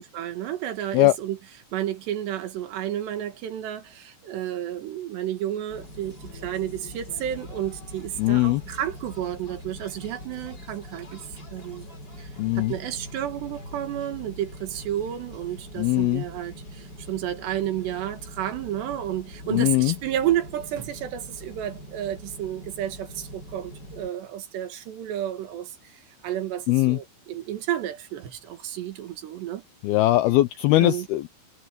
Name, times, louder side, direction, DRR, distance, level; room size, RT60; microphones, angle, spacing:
voice 1, 0.0-1.4 1.7-11.9 12.2-12.3 12.6-29.6 30.8-31.1, right 11 dB, 70° right, 3.8 m, -31 dB
sound 1, 5.7-24.1, equal, 20° left, 6.0 m, -43 dB
voice 2, 8.2-8.6 12.4-12.7 15.8-16.2 19.5-20.0 26.7-27.0 29.8-31.3, left 17 dB, 85° left, 2.2 m, -20 dB
omnidirectional pair, 5.2 m